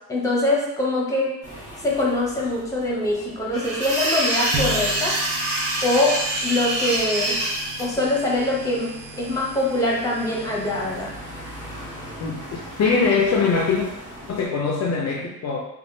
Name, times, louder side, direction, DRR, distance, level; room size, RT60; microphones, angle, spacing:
voice 1, 0.1-1.3 1.8-5.2 5.8-7.4 7.8-11.1, left 2 dB, 10° left, -4 dB, 0.7 m, -23 dB
sound 1, 1.4-14.5, equal, 20° right, 1.3 m, -42 dB
sound 2, 3.5-7.8, right 1 dB, 70° right, 0.9 m, -25 dB
sound 3, 4.5-12.1, right 2 dB, 55° right, 0.5 m, -37 dB
voice 2, 12.2-13.9 14.3-15.6, left 4 dB, 50° left, -1 dB, 0.4 m, -22 dB
3.4 x 2.3 x 2.6 m, 0.86 s
wide cardioid pair, 125°, 33 cm